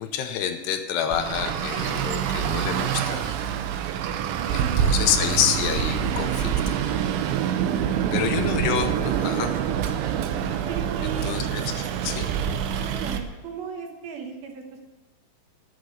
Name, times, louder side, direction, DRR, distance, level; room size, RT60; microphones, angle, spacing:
voice 1, 0.0-3.4 4.5-6.9 8.1-9.6 11.0-12.3, left 9 dB, 80° left, 7 dB, 2.6 m, -28 dB
Traffic noise roadway noise, 1.1-13.2, right 9 dB, 90° right, 3.3 m, -26 dB
voice 2, 4.4-5.0 7.7-8.3 10.7-11.3 12.8-14.6, right 7 dB, 70° right, 3 dB, 2.4 m, -36 dB
11.5 x 6.7 x 9.6 m, 1.2 s
omnidirectional pair, 5.3 m